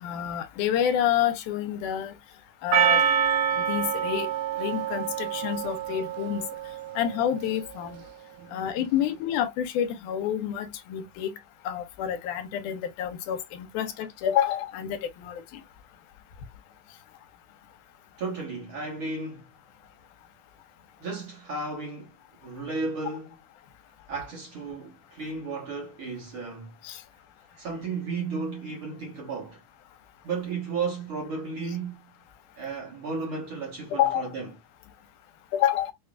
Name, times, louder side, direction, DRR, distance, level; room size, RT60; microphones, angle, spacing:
voice 1, 0.0-2.1 2.6-3.0 3.7-4.3 4.6-6.4 7.0-8.0 8.5-11.3 11.7-15.6 26.8-27.0 33.9-34.2 35.5-35.9, left 10 dB, 85° left, 2.1 m, -28 dB
Percussion, 2.7-7.0, right 8 dB, 85° right, 1.5 m, -26 dB
voice 2, 8.4-8.7 18.2-19.5 21.0-22.1 22.4-23.4 24.1-26.7 27.5-29.6 30.2-32.0 32.5-34.5, right 4 dB, 55° right, 1.7 m, -34 dB
5.8 x 2.3 x 2.4 m
omnidirectional pair, 3.7 m